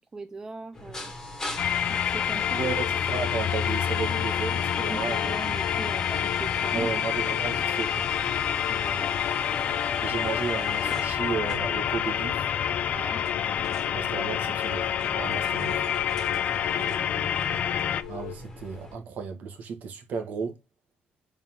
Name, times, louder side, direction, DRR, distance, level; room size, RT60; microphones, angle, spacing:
voice 1, 0.1-1.1 1.9-2.7 4.7-6.9 8.7-9.2 12.9-13.3 16.8-17.5, right 3 dB, 20° right, 0.4 m, -40 dB
sound 1, 0.7-19.0, left 2 dB, 15° left, 2.1 m, -41 dB
sound 2, 1.6-18.0, left 9 dB, 40° left, 0.5 m, -28 dB
sound 3, 2.4-18.4, left 13 dB, 90° left, 1.0 m, -40 dB
voice 2, 2.6-5.3 6.7-8.1 10.0-12.5 13.9-15.9 18.1-20.6, right 5 dB, 50° right, 1.7 m, -34 dB
7.1 x 3.9 x 3.7 m
cardioid pair, 175°, 4 cm